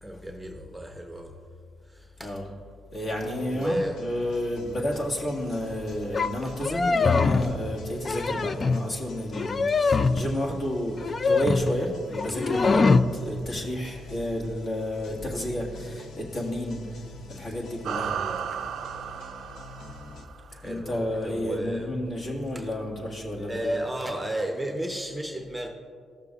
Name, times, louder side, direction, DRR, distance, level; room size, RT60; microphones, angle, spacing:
voice 1, 0.0-1.4 1.9-2.3 3.5-4.0 6.4-6.5 8.1-8.2 12.3-12.4 13.5-13.7 18.0-18.6 20.5-22.0 22.5-22.7 23.4-25.7, right 1 dB, 5° right, 2 dB, 0.7 m, -33 dB
voice 2, 2.9-12.9 13.1-18.1 20.6-23.7, left 1 dB, 50° left, -2 dB, 1.9 m, -31 dB
sound 1, 3.1-20.3, left 2 dB, 75° left, 0.8 m, -46 dB
sound 2, 6.1-6.3 6.6-7.5 8.0-8.9 9.3-10.3 11.0-11.8 12.1-13.1, left 4 dB, 35° left, 0.3 m, -23 dB
sound 3, 17.8-20.6, right 8 dB, 70° right, 0.4 m, -34 dB
14.5 x 6.7 x 2.4 m, 2.1 s
cardioid pair, 90°, 0 cm